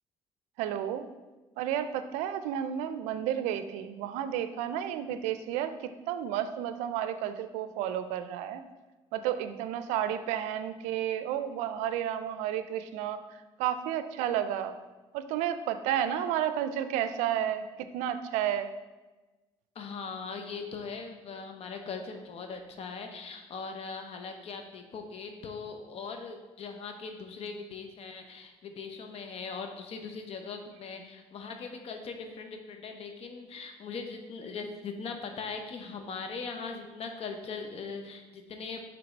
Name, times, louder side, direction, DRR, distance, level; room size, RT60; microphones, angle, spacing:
voice 1, 0.6-1.1 1.6-8.6 9.1-13.2 13.6-14.7 15.1-18.7, right 10 dB, 90° right, 11 dB, 0.4 m, -31 dB
voice 2, 19.7-38.9, left 4 dB, 60° left, 5 dB, 0.9 m, -40 dB
5.8 x 3.4 x 5.2 m, 1.2 s
supercardioid pair, 75°, 12 cm